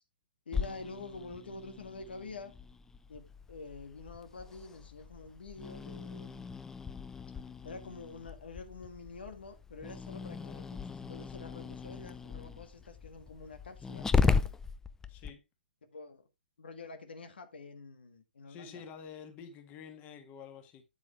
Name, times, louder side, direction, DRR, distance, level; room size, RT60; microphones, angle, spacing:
voice 1, 0.5-2.5 3.1-6.6 7.6-14.5 15.9-16.2 16.6-18.8, left 3 dB, 80° left, 1.7 m, -47 dB
Growling, 0.5-15.3, left 5 dB, 10° left, 0.4 m, -37 dB
voice 2, 15.1-15.4 18.5-20.8, left 7 dB, 30° left, 2.0 m, -48 dB
8.8 x 8.2 x 3.3 m
hypercardioid pair, 130°, 5 cm